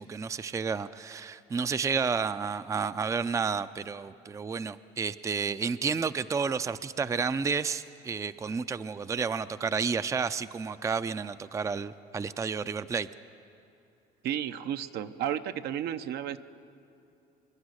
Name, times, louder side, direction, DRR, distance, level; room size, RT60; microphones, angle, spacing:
voice 1, 0.0-13.1, right 5 dB, 20° right, 13 dB, 0.4 m, -31 dB
voice 2, 14.2-16.4, right 10 dB, 75° right, 9 dB, 0.7 m, -32 dB
24.5 x 11.5 x 9.7 m, 2.7 s
cardioid pair, 110°, 17 cm